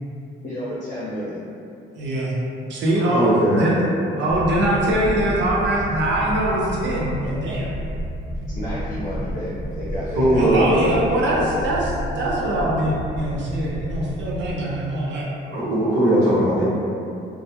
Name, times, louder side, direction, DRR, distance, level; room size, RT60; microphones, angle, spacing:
voice 1, 0.4-1.4 8.5-10.6 10.9-11.6, left 1 dB, 45° left, -10 dB, 0.6 m, -31 dB
voice 2, 2.0-2.3 2.7-3.8 4.2-7.7 10.3-11.8 12.2-15.3, right 1 dB, 70° right, -4 dB, 0.5 m, -23 dB
voice 3, 2.9-3.7 10.1-10.9 15.5-16.6, right 1 dB, 85° right, -15 dB, 0.9 m, -19 dB
sound 1, 4.3-14.5, equal, ahead, 0.5 m, -30 dB
2.2 x 2.0 x 2.8 m, 2.6 s
cardioid pair, 90°, 20 cm